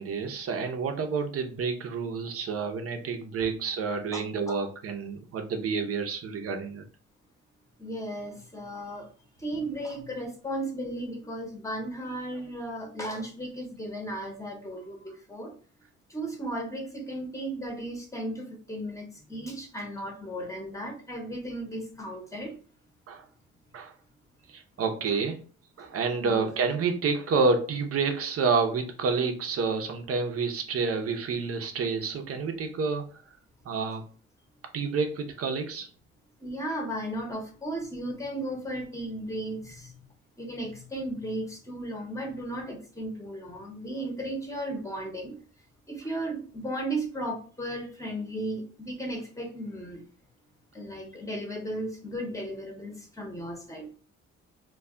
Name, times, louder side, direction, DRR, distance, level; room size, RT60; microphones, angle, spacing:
voice 1, 0.0-6.8 23.1-23.2 23.7-23.9 24.5-25.4 25.8-33.1 33.6-34.0 34.7-35.9, right 4 dB, 50° right, 5 dB, 0.7 m, -29 dB
voice 2, 4.1-4.7 7.8-9.1 9.4-15.5 16.1-22.5 26.2-26.5 36.4-39.9 40.4-45.4 45.9-50.0 50.7-53.9, right 1 dB, 10° left, 1 dB, 0.8 m, -35 dB
2.3 x 2.2 x 3.5 m, 0.40 s
cardioid pair, 90°, 30 cm